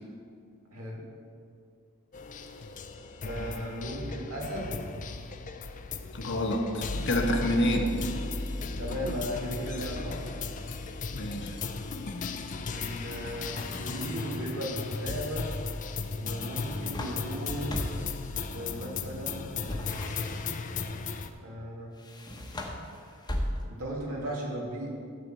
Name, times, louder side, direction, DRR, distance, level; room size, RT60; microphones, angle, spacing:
voice 1, 0.7-1.0 3.2-4.7 8.8-10.2 12.7-15.5 16.2-17.7 18.5-19.5 21.4-22.0 23.7-25.0, equal, 90° right, -3 dB, 2.5 m, -36 dB
sound 1, 2.1-21.3, left 4 dB, 35° left, 0.5 m, -36 dB
voice 2, 6.1-7.9 11.1-11.6, left 1 dB, 55° left, 3 dB, 1.1 m, -28 dB
sound 2, 13.1-14.3 16.3-18.2 19.6-20.8 21.9-23.9, left 1 dB, 20° left, 1.0 m, -38 dB
12.0 x 4.3 x 7.6 m, 2.4 s
head